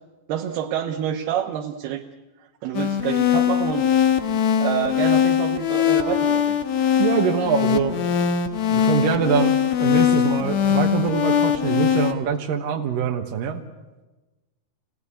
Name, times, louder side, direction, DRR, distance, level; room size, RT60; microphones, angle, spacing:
voice 1, 0.3-2.0 2.6-3.9 4.6-6.6, right 10 dB, 85° right, 2 dB, 3.1 m, -27 dB
sound 1, 2.7-12.1, left 9 dB, 60° left, 2.2 m, -21 dB
voice 2, 7.0-8.0 8.7-13.6, right 7 dB, 70° right, 2 dB, 2.8 m, -24 dB
27.0 x 17.5 x 9.9 m, 1.2 s
omnidirectional pair, 4.4 m